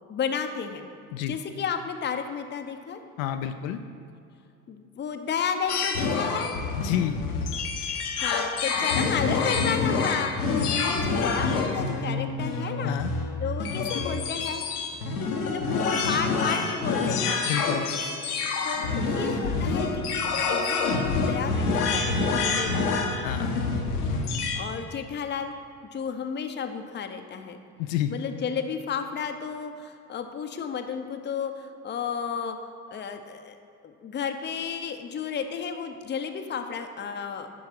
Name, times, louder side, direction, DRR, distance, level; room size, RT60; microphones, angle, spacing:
voice 1, 0.1-0.9 1.3-3.0 4.7-6.5 7.7-13.0 13.4-14.7 15.4-17.5 18.6-23.0 24.5-25.5 25.9-27.6 28.1-32.6 32.9-33.6 33.8-37.5, left 6 dB, 25° left, 6 dB, 0.7 m, -32 dB
voice 2, 3.2-3.8 6.8-7.2 12.8-13.1 17.4-17.9 23.2-23.5 27.8-28.1, left 11 dB, 65° left, 7 dB, 0.6 m, -29 dB
sound 1, 5.7-24.7, left 4 dB, 85° left, 1.2 m, -27 dB
11.0 x 4.6 x 5.9 m, 2.4 s
hypercardioid pair, 75°, 44 cm